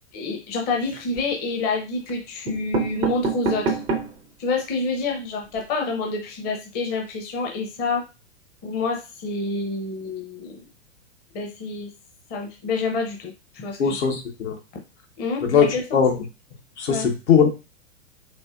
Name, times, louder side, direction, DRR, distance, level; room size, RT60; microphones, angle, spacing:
voice 1, 0.1-3.8 4.4-8.0 8.6-10.7 11.3-11.9 12.3-14.0 15.2-15.8 16.9-17.1, left 3 dB, 25° left, 1 dB, 0.7 m, -28 dB
sound 1, 0.7-1.3 2.1-2.2 2.5-4.3 4.8-4.9 5.0-5.1 5.4-5.6, right 4 dB, 15° right, 0.4 m, -27 dB
voice 2, 13.8-14.6 15.4-16.1 16.8-17.5, left 7 dB, 65° left, 4 dB, 1.0 m, -20 dB
4.2 x 2.6 x 2.4 m, 0.29 s
figure-of-eight pair, 105°, 37 cm